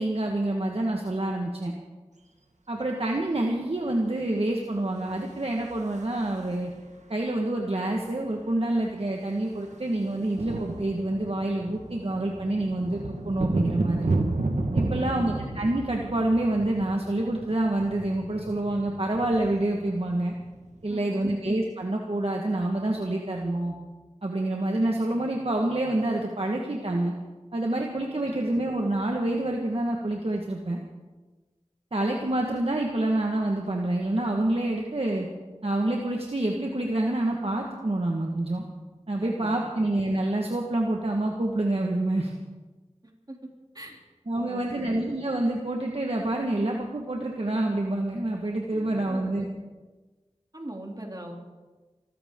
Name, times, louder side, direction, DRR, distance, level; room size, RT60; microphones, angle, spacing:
voice 1, 0.0-1.7 2.7-6.7 7.1-14.1 14.7-20.3 20.8-23.7 24.2-27.1 27.5-30.8 31.9-35.3 35.6-38.6 39.1-42.3 44.3-49.5, right 1 dB, 55° right, 0 dB, 1.7 m, -27 dB
sound 1, 5.2-6.7 8.0-8.1 8.3-8.6 8.8-20.9, right 2 dB, 85° right, 1.5 m, -32 dB
voice 2, 14.7-15.3 20.9-21.3 28.2-28.6 39.2-39.7 43.3-43.4 43.7-44.0 44.3-45.2 48.7-49.4 50.5-51.3, right 1 dB, 35° right, 0 dB, 3.2 m, -41 dB
24.5 x 14.5 x 3.8 m, 1.3 s
wide cardioid pair, 45°, 12 cm